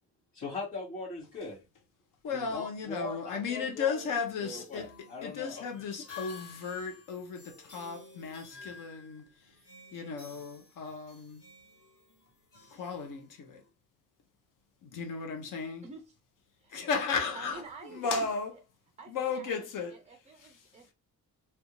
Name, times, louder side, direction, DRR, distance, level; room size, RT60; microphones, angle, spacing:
voice 1, 0.3-1.7 2.3-4.1 4.4-5.8, left 3 dB, 90° left, 2.1 m, -40 dB
voice 2, 2.2-4.9 5.2-9.3 9.9-11.4 12.7-13.6 14.8-15.9 16.7-17.6 17.9-18.5 19.1-20.0, left 5 dB, 65° left, 0.8 m, -35 dB
sound 1, 4.1-13.7, left 5 dB, 40° left, 1.4 m, -52 dB
voice 3, 15.8-16.1 16.6-16.7 17.3-18.3 19.0-20.9, right 4 dB, 20° right, 0.3 m, -48 dB
3.3 x 2.6 x 2.9 m
wide cardioid pair, 170°, 34 cm